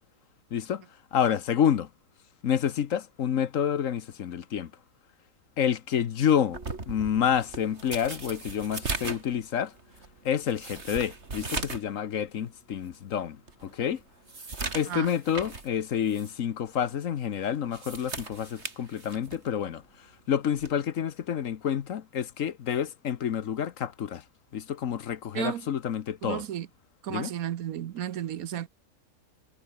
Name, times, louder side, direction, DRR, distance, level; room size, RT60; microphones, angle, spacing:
voice 1, 0.5-0.8 1.1-1.9 2.4-4.7 5.6-6.6 6.9-9.7 10.2-13.4 13.6-14.0 14.7-19.8 20.3-24.2 24.5-26.4 27.1-27.3, left 8 dB, 60° left, 1.3 m, -28 dB
sound 1, 6.5-11.9 12.3-12.4 12.9-13.0 13.5-15.7 16.1-16.3 17.5-19.5 20.6-20.8, right 3 dB, 45° right, 3.1 m, -38 dB
voice 2, 25.3-25.7 26.2-26.7 27.0-28.7, right 11 dB, 70° right, 1.2 m, -33 dB
omnidirectional pair, 1.6 m